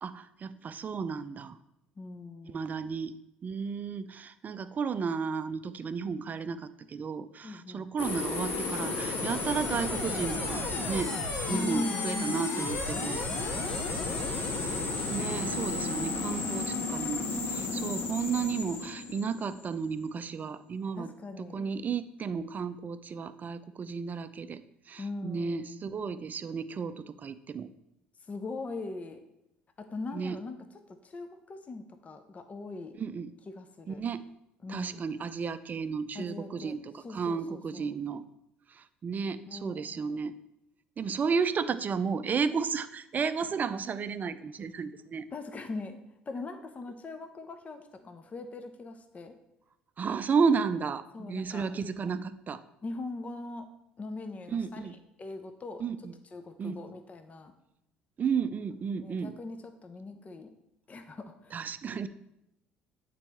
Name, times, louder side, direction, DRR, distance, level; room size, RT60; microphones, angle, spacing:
voice 1, 0.0-1.6 2.5-3.1 3.4-11.1 11.5-13.2 15.1-21.1 21.4-24.6 24.9-27.7 30.1-30.4 33.0-33.3 33.9-34.3 34.7-38.2 38.7-40.3 41.0-45.3 50.0-52.6 54.5-55.0 55.8-56.1 56.6-56.8 58.2-59.4 61.5-62.1, right 5 dB, 35° right, 12 dB, 0.5 m, -33 dB
voice 2, 2.0-2.9 7.4-7.8 11.5-12.4 13.7-14.4 16.0-16.6 17.6-18.2 21.0-21.7 25.0-25.9 28.2-29.2 29.8-30.6 31.0-32.9 33.5-34.0 34.6-35.3 36.1-37.9 39.5-40.0 45.3-46.0 46.2-49.4 51.1-51.7 52.8-53.7 54.0-54.8 55.2-55.8 56.3-57.5 59.0-60.5 60.9-61.6, left 3 dB, 30° left, 8 dB, 0.7 m, -41 dB
sound 1, 8.0-19.9, left 3 dB, 50° left, 1.4 m, -33 dB
8.8 x 4.1 x 4.3 m, 0.85 s
figure-of-eight pair, 55°, 5 cm